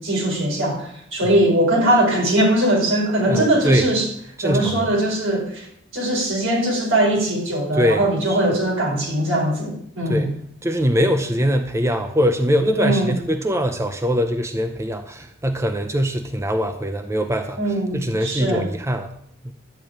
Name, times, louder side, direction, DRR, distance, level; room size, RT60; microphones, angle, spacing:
voice 1, 0.0-4.1 4.4-5.7 5.9-10.3 12.8-13.1 17.6-18.7, right 1 dB, 85° right, -2 dB, 4.7 m, -20 dB
voice 2, 3.3-3.9 4.4-4.9 7.7-8.4 10.1-10.3 10.6-19.1, equal, 15° right, 6 dB, 0.6 m, -22 dB
12.5 x 4.9 x 8.8 m, 0.70 s
head